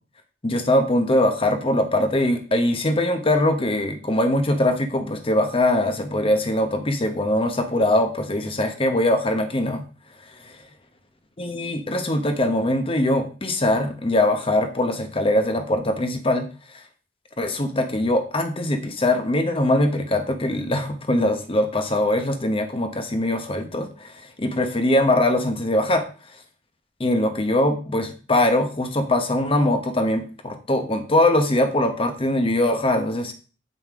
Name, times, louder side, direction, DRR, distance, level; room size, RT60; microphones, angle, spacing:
voice 1, 0.4-9.9 10.4-10.5 11.4-16.5 17.4-26.0 27.0-33.3, left 1 dB, 30° left, 7 dB, 0.9 m, -22 dB
7.4 x 5.4 x 3.6 m, 0.37 s
head